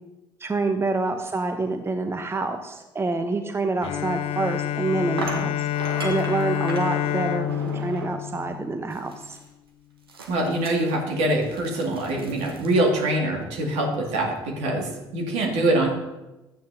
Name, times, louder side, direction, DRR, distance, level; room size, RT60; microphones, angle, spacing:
voice 1, 0.4-5.7 6.0-9.4, right 3 dB, 20° right, 7 dB, 0.9 m, -27 dB
Bowed string instrument, 3.8-9.3, left 11 dB, 55° left, 0.4 m, -28 dB
sound 1, 4.2-4.3 5.2-8.3 8.9-9.5 10.1-12.8, right 4 dB, 85° right, 1.1 m, -37 dB
voice 2, 10.3-15.9, right 1 dB, 65° right, 0 dB, 2.2 m, -24 dB
13.5 x 9.2 x 2.8 m, 1.0 s
figure-of-eight pair, 50°, 12 cm